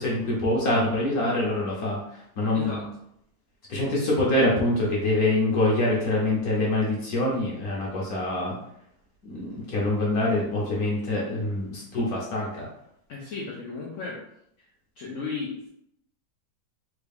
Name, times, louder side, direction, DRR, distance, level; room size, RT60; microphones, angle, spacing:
voice 1, 0.0-2.8 3.7-8.5 9.2-12.7, left 1 dB, 60° left, -4 dB, 1.1 m, -25 dB
voice 2, 2.5-2.8 13.1-14.2 15.0-15.7, left 4 dB, 85° left, -3 dB, 0.6 m, -34 dB
3.5 x 2.3 x 3.4 m, 0.74 s
omnidirectional pair, 2.0 m